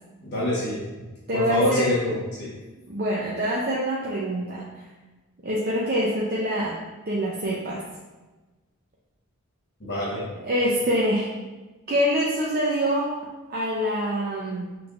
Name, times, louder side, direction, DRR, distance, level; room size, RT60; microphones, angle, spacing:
voice 1, 0.2-1.0 1.3-2.6 9.8-10.3, left 1 dB, 50° left, -6 dB, 1.2 m, -26 dB
voice 2, 1.3-1.9 2.9-4.6 5.4-6.8 7.1-7.8 10.4-11.3 11.9-13.1 13.5-14.7, equal, 40° right, -5 dB, 0.5 m, -25 dB
6.0 x 3.3 x 2.4 m, 1.2 s
head